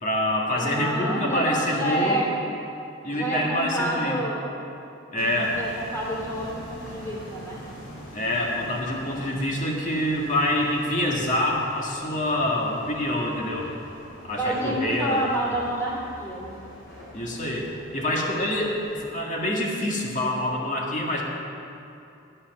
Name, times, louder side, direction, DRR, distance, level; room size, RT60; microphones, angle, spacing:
voice 1, 0.0-2.2 3.0-4.2 5.1-5.6 8.1-13.7 14.2-15.2 17.1-21.2, left 1 dB, 40° left, -2 dB, 1.8 m, -26 dB
voice 2, 0.5-2.3 3.1-4.4 5.1-7.6 9.1-9.3 13.5-13.7 14.3-16.5, right 1 dB, 15° left, -5 dB, 2.9 m, -28 dB
sound 1, 5.2-19.1, equal, 90° left, 3.4 m, -44 dB
12.5 x 8.6 x 5.9 m, 2.7 s
head